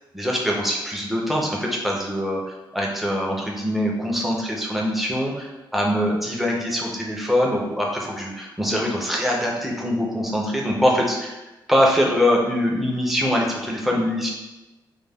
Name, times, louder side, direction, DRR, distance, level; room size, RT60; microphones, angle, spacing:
voice 1, 0.1-14.3, equal, ahead, -2 dB, 0.4 m, -23 dB
2.2 x 2.0 x 3.3 m, 1.1 s
wide cardioid pair, 165°, 8 cm